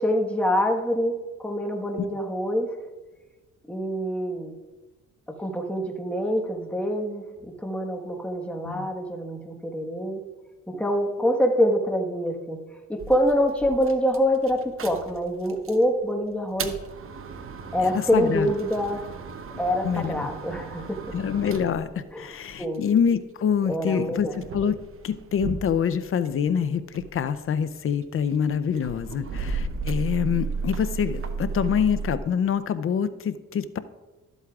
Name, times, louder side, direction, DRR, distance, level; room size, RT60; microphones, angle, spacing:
voice 1, 0.0-2.7 3.7-4.5 5.3-10.2 10.7-12.6 12.9-16.7 17.7-19.0 19.6-21.0 22.1-22.2 22.6-22.8 23.7-24.3, equal, 5° left, 1 dB, 1.3 m, -25 dB
sound 1, 13.0-15.9 16.3-23.1 23.8-26.5 26.8-32.2, right 4 dB, 45° right, 0.8 m, -35 dB
voice 2, 17.8-18.5 19.8-20.3 21.1-24.8 25.0-33.8, left 7 dB, 45° left, 13 dB, 0.6 m, -26 dB
13.0 x 8.0 x 2.4 m, 1.1 s
cardioid pair, 90°, 30 cm